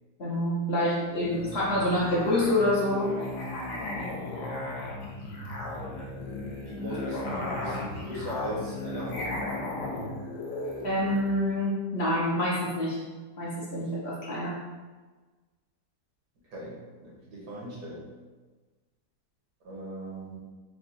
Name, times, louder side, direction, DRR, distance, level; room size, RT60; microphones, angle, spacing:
voice 1, 0.2-3.1 10.8-13.0 13.4-14.5, left 1 dB, 50° left, -7 dB, 0.9 m, -27 dB
Musical instrument, 1.1-11.3, left 2 dB, 80° left, 1.4 m, -35 dB
voice 2, 6.6-9.3 16.5-18.1 19.6-20.4, right 1 dB, 80° right, -5 dB, 1.8 m, -38 dB
4.6 x 2.2 x 4.0 m, 1.3 s
omnidirectional pair, 1.8 m